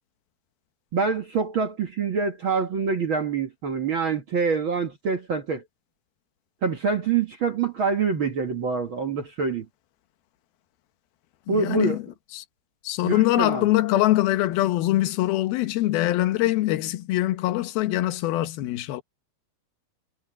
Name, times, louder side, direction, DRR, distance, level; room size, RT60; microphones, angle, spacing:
voice 1, 0.9-5.6 6.6-9.7 11.5-12.0 13.0-13.7, right 5 dB, 70° right, 1.2 m, -25 dB
voice 2, 11.5-12.0 12.3-12.4 12.8-19.0, left 16 dB, 75° left, 3.0 m, -23 dB
omnidirectional pair, 4.6 m